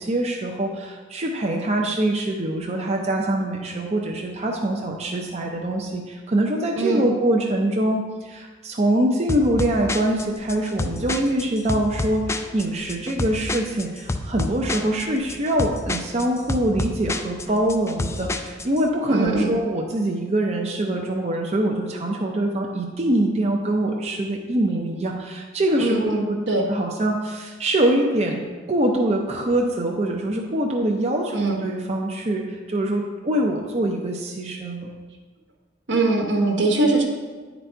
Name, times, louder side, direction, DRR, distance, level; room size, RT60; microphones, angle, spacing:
voice 1, 0.0-26.4 26.7-31.3 31.6-34.9, right 1 dB, 35° right, 0 dB, 0.6 m, -24 dB
sound 1, 9.3-18.8, left 2 dB, 15° left, 0.3 m, -29 dB
voice 2, 19.1-19.5 25.8-26.6 31.3-31.6 35.9-37.0, right 2 dB, 75° right, 1 dB, 1.3 m, -21 dB
10.0 x 4.0 x 4.5 m, 1.4 s
head